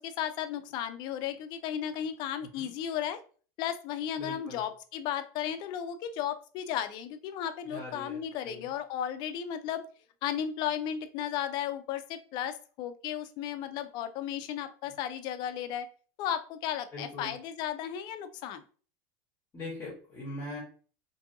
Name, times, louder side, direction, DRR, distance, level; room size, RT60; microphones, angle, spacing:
voice 1, 0.0-3.2 3.6-9.8 10.2-15.9 16.2-18.6, left 9 dB, 45° left, 10 dB, 0.4 m, -34 dB
voice 2, 4.2-4.6 7.7-8.7 16.9-17.3 19.5-20.6, left 1 dB, 25° left, -5 dB, 0.9 m, -41 dB
2.6 x 2.5 x 2.5 m, 0.40 s
supercardioid pair, 145°, 11 cm